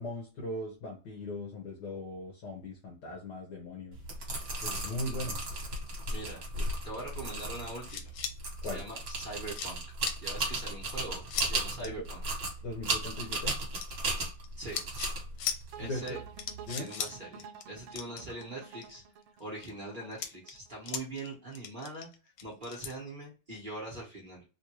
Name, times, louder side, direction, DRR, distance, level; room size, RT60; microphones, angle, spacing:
voice 1, 0.0-4.0 4.6-5.4 8.6-8.8 11.8-11.9 12.6-13.6 15.8-16.2 16.7-16.9, left 1 dB, 65° left, 0 dB, 1.3 m, -39 dB
sound 1, 3.9-16.7, right 2 dB, 50° right, 1.5 m, -36 dB
voice 2, 6.1-8.0 8.7-9.8 10.2-12.2 14.6-14.8 15.8-16.2 16.8-19.0 19.4-22.1 22.4-24.4, right 2 dB, 30° right, -3 dB, 0.9 m, -42 dB
sound 2, 7.8-8.3 9.0-9.1 9.5-9.7 10.1-10.2 11.3-11.5 11.8-11.9 13.8-14.5 14.7-15.1 15.4-15.6 16.1-16.2 16.4-17.1 17.4-17.6 17.9-18.9 19.4-19.7 20.1-21.3 21.5-22.9, left 8 dB, 80° left, 1.4 m, -37 dB
sound 3, 15.7-20.8, right 7 dB, 85° right, 1.4 m, -50 dB
3.3 x 2.6 x 2.9 m, 0.35 s
omnidirectional pair, 2.3 m